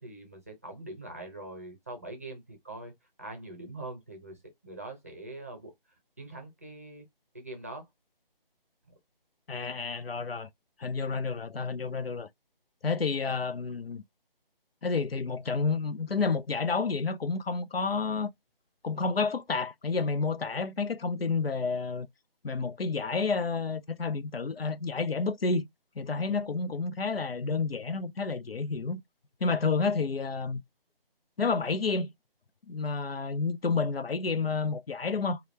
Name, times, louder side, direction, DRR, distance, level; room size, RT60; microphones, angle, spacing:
voice 1, 0.0-2.9 3.2-5.7 6.2-7.1 7.3-7.9 8.9-9.0, right 2 dB, 15° right, 0.6 m, -43 dB
voice 2, 9.5-10.5 10.8-12.3 12.8-14.0 14.8-18.3 18.8-22.1 22.4-25.7 26.0-29.0 29.4-30.6 31.4-32.1 32.7-35.4, left 4 dB, 85° left, 0.7 m, -30 dB
4.9 x 2.3 x 3.1 m
figure-of-eight pair, 160°, 29 cm